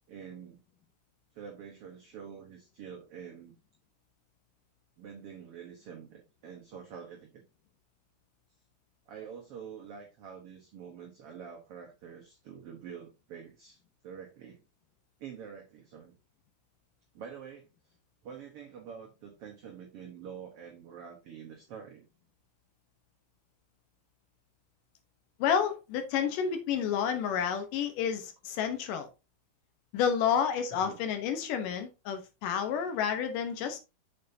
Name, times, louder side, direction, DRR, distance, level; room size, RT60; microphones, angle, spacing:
voice 1, 0.1-0.6 1.3-3.5 5.0-7.3 9.1-14.6 15.2-16.2 17.1-17.9 18.2-22.0 30.7-31.0, right 7 dB, 60° right, 1.7 m, -46 dB
voice 2, 25.4-29.1 29.9-33.8, left 7 dB, 85° left, 2.6 m, -30 dB
7.4 x 6.8 x 2.7 m
omnidirectional pair, 3.7 m